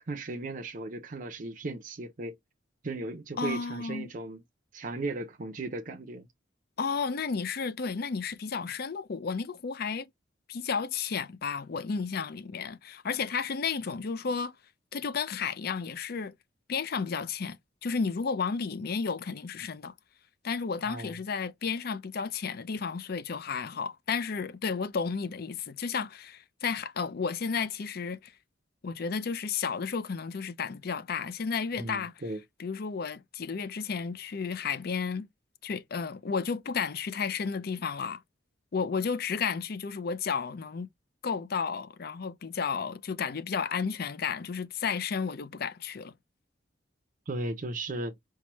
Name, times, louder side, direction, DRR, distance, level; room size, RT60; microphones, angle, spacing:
voice 1, 0.1-2.4 2.8-4.4 4.7-6.3 20.8-21.1 31.8-32.4 47.3-48.1, right 2 dB, 45° right, 0.6 m, -36 dB
voice 2, 3.4-4.1 6.8-10.1 10.5-14.6 14.9-16.3 16.7-19.9 20.4-28.4 28.8-32.1 32.6-35.3 35.6-38.2 38.7-40.9 41.2-46.1, left 5 dB, 55° left, 0.5 m, -32 dB
4.6 x 2.2 x 3.0 m
head